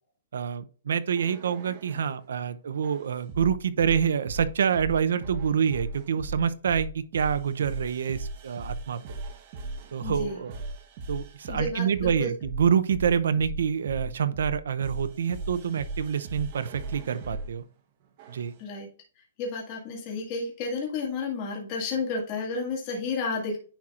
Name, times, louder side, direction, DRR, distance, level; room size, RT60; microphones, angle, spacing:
voice 1, 0.3-9.0 9.9-10.5 11.1-17.6 18.3-18.5, right 7 dB, 75° right, 0.6 m, -27 dB
sound 1, 1.2-2.1 2.8-17.5 18.2-18.6, right 2 dB, 35° right, 1.0 m, -37 dB
voice 2, 10.0-10.4 11.5-12.3 18.6-18.9 19.4-23.6, left 4 dB, 25° left, 2.0 m, -31 dB
10.0 x 4.3 x 2.5 m
hypercardioid pair, 170°, 0 cm